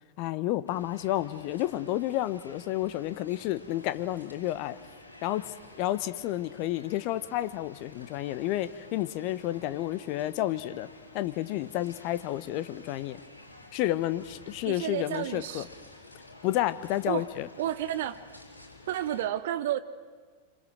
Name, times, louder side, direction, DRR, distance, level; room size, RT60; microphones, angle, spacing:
voice 1, 0.2-4.7 5.2-10.9 11.1-13.2 13.7-15.6 16.4-17.5, left 14 dB, 45° left, 14 dB, 1.0 m, -30 dB
sound 1, 0.7-19.3, left 2 dB, 80° left, 3.3 m, -51 dB
voice 2, 14.7-15.7 17.1-17.3 17.6-18.2 18.9-19.8, right 12 dB, 55° right, 13 dB, 0.9 m, -31 dB
26.5 x 25.5 x 6.4 m, 1.5 s
figure-of-eight pair, 90°, 0 cm